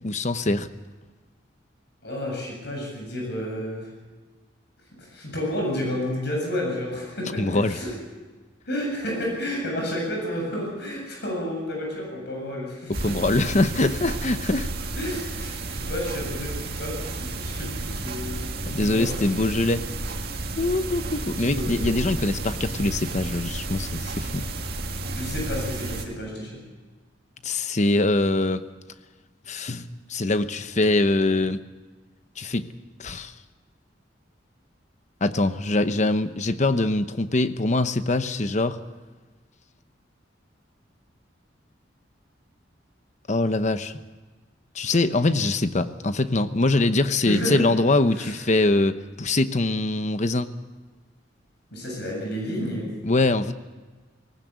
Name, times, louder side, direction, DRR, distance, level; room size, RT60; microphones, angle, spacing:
voice 1, 0.0-0.7 7.4-7.8 12.9-14.7 18.7-19.9 20.6-24.4 27.4-28.7 29.5-31.6 32.4-32.6 33.0-33.3 35.2-38.8 43.3-43.9 44.7-50.5 53.0-53.5, left 2 dB, 40° left, 11 dB, 0.9 m, -23 dB
voice 2, 2.0-3.9 5.0-8.0 8.7-12.9 15.0-16.9 17.2-18.5 18.8-19.2 21.4-22.1 25.1-26.6 47.3-47.6 48.1-48.3 51.7-52.9, left 1 dB, 60° left, 0 dB, 7.6 m, -31 dB
sound 1, 12.9-26.0, right 2 dB, 55° right, 2.0 m, -32 dB
19.0 x 18.5 x 8.2 m, 1.3 s
head